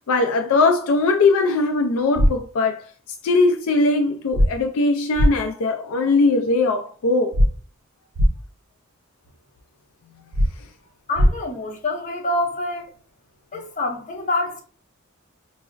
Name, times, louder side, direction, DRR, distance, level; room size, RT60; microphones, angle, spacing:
voice 1, 0.1-2.9 3.2-7.5, left 3 dB, 75° left, 0.3 m, -20 dB
sound 1, 2.2-2.3 4.3-4.5 5.2-5.3 7.3-7.5 8.2-8.3 10.3-10.5 11.2-11.3, equal, 85° right, 0.4 m, -16 dB
voice 2, 11.1-12.9 13.5-14.6, left 2 dB, 35° left, 0.8 m, -26 dB
4.8 x 2.0 x 2.3 m
head